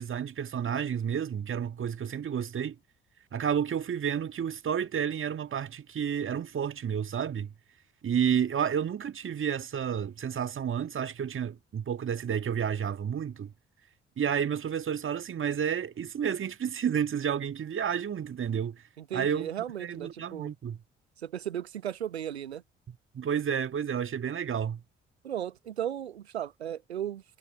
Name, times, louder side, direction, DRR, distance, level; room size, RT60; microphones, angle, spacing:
voice 1, 0.0-2.8 3.3-7.5 8.0-13.5 14.2-18.8 19.1-19.5 19.8-20.8 22.9-24.8, right 8 dB, 40° right, 1.8 m, -31 dB
voice 2, 19.0-20.5 21.2-22.6 25.2-27.4, right 10 dB, 85° right, 0.8 m, -36 dB
figure-of-eight pair, 45°, 31 cm